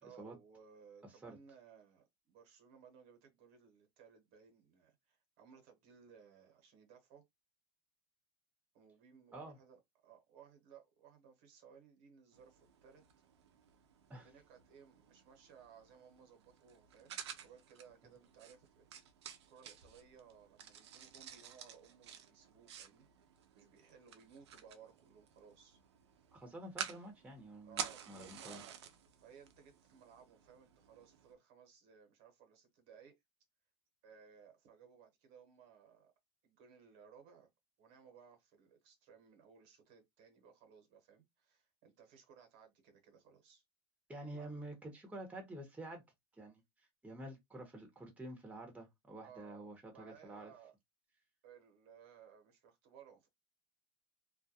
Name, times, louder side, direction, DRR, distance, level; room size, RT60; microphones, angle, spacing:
voice 1, 0.0-7.2 8.7-13.0 14.1-18.9 19.5-25.8 27.6-28.7 29.2-33.1 34.0-36.1 36.4-37.5 37.8-43.6 44.3-44.5 49.2-50.7 51.4-53.3, right 7 dB, 55° right, 1.1 m, -61 dB
voice 2, 1.0-1.4 9.3-9.6 14.1-14.3 26.3-28.6 44.1-46.0 46.4-50.5, right 1 dB, 10° right, 1.0 m, -49 dB
sound 1, 12.3-31.3, right 8 dB, 80° right, 0.5 m, -51 dB
2.3 x 2.1 x 2.8 m
hypercardioid pair, 100°, 14 cm